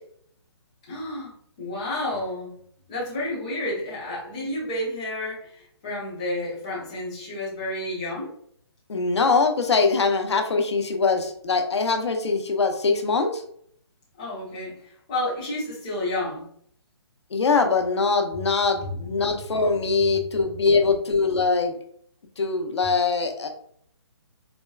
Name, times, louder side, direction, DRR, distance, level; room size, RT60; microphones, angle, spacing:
voice 1, 0.9-2.5 2.9-8.3 14.2-16.4, left 1 dB, 15° left, -7 dB, 0.8 m, -31 dB
voice 2, 8.9-13.4 17.3-21.7 22.4-23.5, left 4 dB, 80° left, 5 dB, 0.7 m, -22 dB
4.2 x 2.2 x 2.3 m, 0.64 s
hypercardioid pair, 180°, 14 cm